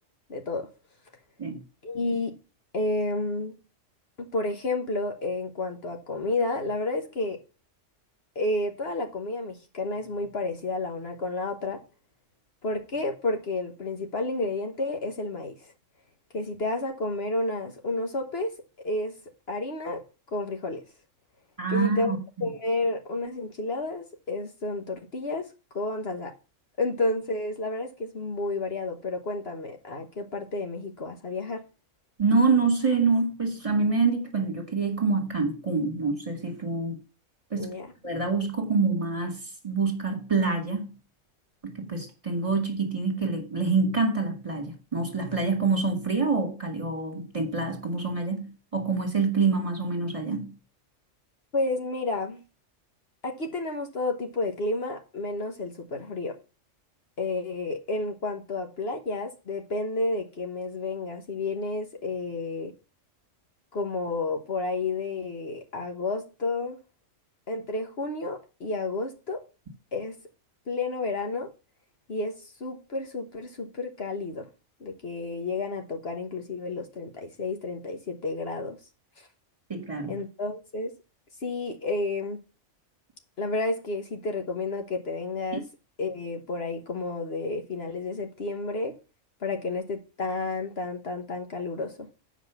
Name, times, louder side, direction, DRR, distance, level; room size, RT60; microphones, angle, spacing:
voice 1, 0.3-0.7 1.8-2.4 2.7-3.6 4.2-7.4 8.3-11.8 12.6-15.7 16.3-19.1 19.5-20.0 20.3-20.8 21.7-22.2 22.4-25.5 25.7-26.3 26.8-31.6 37.6-37.9 51.5-52.4 53.2-56.4 57.2-62.7 63.7-66.8 67.5-69.4 69.9-70.2 70.7-71.5 72.1-74.5 74.8-78.8 80.1-80.9 81.4-82.4 83.4-85.6 86.0-89.0 89.4-92.1, left 2 dB, 55° left, 1.4 m, -31 dB
voice 2, 21.6-22.2 32.2-37.0 37.5-37.7 38.0-40.9 41.6-50.6 79.7-80.1 85.5-85.6, right 4 dB, 25° right, 1.9 m, -26 dB
7.8 x 5.1 x 6.9 m
omnidirectional pair, 1.3 m